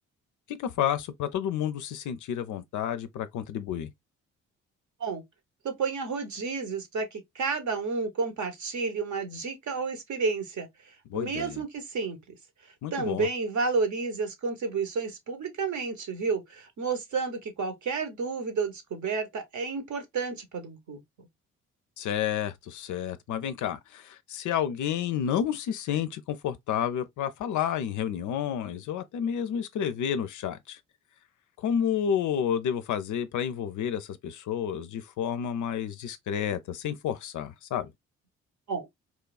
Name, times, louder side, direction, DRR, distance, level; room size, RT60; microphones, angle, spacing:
voice 1, 0.5-3.9 11.1-11.6 12.8-13.3 22.0-30.8 31.6-37.9, left 9 dB, 50° left, 0.4 m, -30 dB
voice 2, 5.6-10.7 11.1-12.2 12.9-21.0 38.7-38.8, right 4 dB, 45° right, 0.9 m, -31 dB
3.1 x 2.2 x 2.3 m
hypercardioid pair, 45°, 39 cm